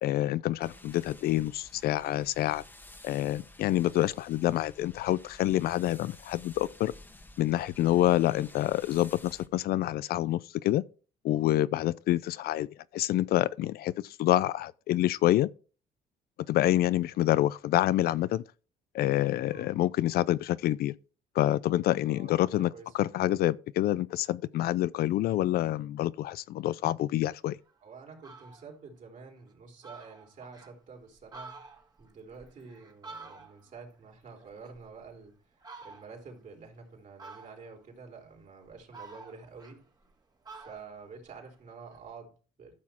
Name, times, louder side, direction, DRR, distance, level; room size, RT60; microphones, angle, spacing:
voice 1, 0.0-2.6 3.0-6.9 7.4-10.8 11.2-12.7 12.9-15.5 16.5-18.4 18.9-20.9 21.3-27.6, left 14 dB, 65° left, 0.5 m, -27 dB
sound 1, 0.6-9.5, left 1 dB, 10° left, 1.3 m, -53 dB
voice 2, 19.5-19.8 22.1-23.2 27.8-35.4 35.8-39.8 40.5-42.7, right 5 dB, 50° right, 3.7 m, -49 dB
Fowl, 27.6-27.7 28.1-28.7 29.2-29.3 29.5-29.6 29.8-30.7 31.2-33.8 34.1-35.2 35.6-36.3 37.2-37.8 38.4-40.1 40.4-42.0, right 3 dB, 25° right, 1.9 m, -49 dB
13.0 x 6.2 x 4.4 m
cardioid pair, 110°, 17 cm